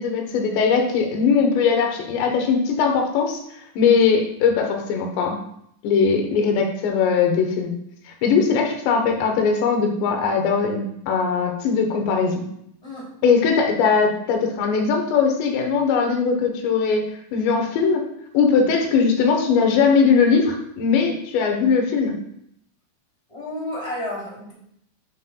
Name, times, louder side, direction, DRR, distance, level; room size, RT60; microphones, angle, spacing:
voice 1, 0.0-3.4 3.8-5.4 5.8-7.7 8.2-12.4 13.2-18.0 18.3-22.1, left 5 dB, 80° left, 3 dB, 3.3 m, -20 dB
voice 2, 23.3-24.5, left 1 dB, 10° left, -5 dB, 2.2 m, -31 dB
11.5 x 6.2 x 2.3 m, 0.71 s
omnidirectional pair, 5.0 m